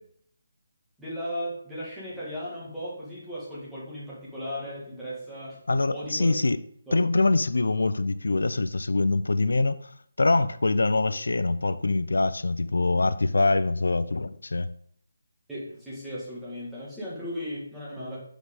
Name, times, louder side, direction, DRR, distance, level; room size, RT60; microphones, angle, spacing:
voice 1, 1.0-5.6 5.9-6.3 6.9-7.0 15.5-18.2, equal, 5° right, -9 dB, 2.0 m, -36 dB
voice 2, 5.7-6.6 6.9-9.9 10.2-14.7, left 3 dB, 90° left, 14 dB, 0.5 m, -24 dB
10.5 x 5.0 x 3.7 m, 0.64 s
hypercardioid pair, 170°, 0 cm